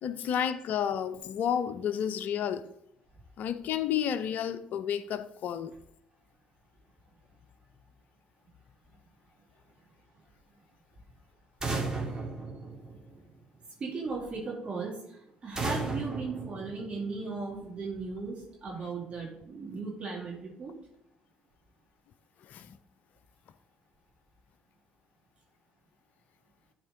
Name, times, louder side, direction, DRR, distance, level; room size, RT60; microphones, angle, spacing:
voice 1, 0.0-2.7 3.4-5.7 22.4-22.8, left 9 dB, 55° left, 0.5 m, -31 dB
sound 1, 11.6-13.4 15.6-17.3, right 3 dB, 20° right, 2.5 m, -35 dB
voice 2, 13.8-15.2 15.4-20.8, right 4 dB, 35° right, 2.3 m, -37 dB
12.0 x 4.4 x 3.9 m
figure-of-eight pair, 50°, 3 cm